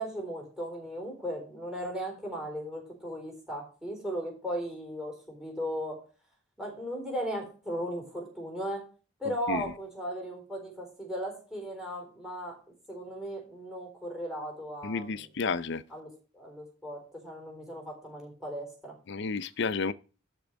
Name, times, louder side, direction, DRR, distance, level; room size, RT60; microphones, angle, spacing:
voice 1, 0.0-6.0 6.6-8.8 9.2-12.6 12.9-15.3 15.9-16.1 16.3-18.9, equal, 5° right, 3.8 m, -37 dB
voice 2, 14.8-15.8 19.1-19.9, left 4 dB, 60° left, 0.6 m, -31 dB
12.0 x 4.6 x 6.2 m
head